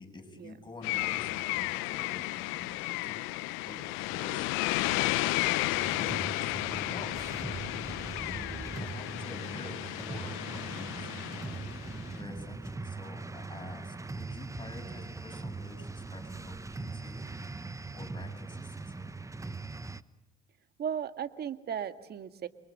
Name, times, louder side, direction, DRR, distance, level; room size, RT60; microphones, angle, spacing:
voice 1, 0.0-3.2 3.5-7.7 8.4-11.7 12.2-17.5 17.9-19.1, left 3 dB, 20° left, 4 dB, 8.0 m, -48 dB
sound 1, 0.8-12.2, left 20 dB, 75° left, 0.9 m, -33 dB
sound 2, 5.7-20.0, right 3 dB, 15° right, 1.1 m, -41 dB
voice 2, 8.3-8.7 20.8-22.5, right 8 dB, 50° right, 10 dB, 2.0 m, -36 dB
29.5 x 23.5 x 7.6 m, 1.0 s
hypercardioid pair, 65°, 21 cm